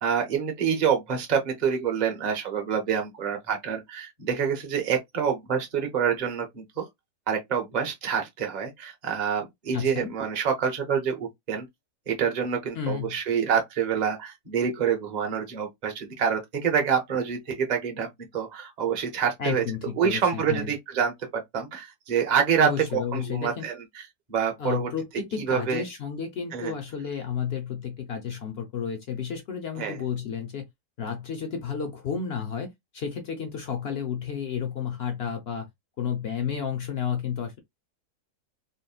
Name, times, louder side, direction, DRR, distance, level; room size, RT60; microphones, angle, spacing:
voice 1, 0.0-6.9 7.3-11.7 12.1-19.6 20.0-22.7 23.1-24.0 24.3-24.9 25.4-25.8 26.5-26.7 29.8-30.0, right 7 dB, 35° right, 0.7 m, -27 dB
voice 2, 9.7-10.1 12.7-13.2 19.4-20.7 22.6-23.6 24.6-30.7 31.0-35.7 36.0-37.6, left 7 dB, 65° left, 0.6 m, -32 dB
3.6 x 2.0 x 2.3 m
omnidirectional pair, 1.7 m